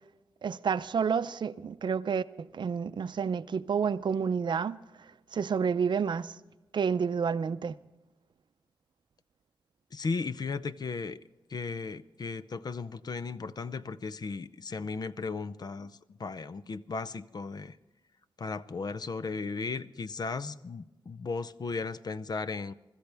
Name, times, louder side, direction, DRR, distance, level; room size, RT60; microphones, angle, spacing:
voice 1, 0.4-4.8 5.3-6.3 6.7-7.8, right 6 dB, 65° right, 0.5 m, -29 dB
voice 2, 9.9-11.2 11.5-17.8 18.4-22.7, left 4 dB, 55° left, 0.6 m, -36 dB
24.5 x 13.5 x 3.5 m
wide cardioid pair, 90°, 8 cm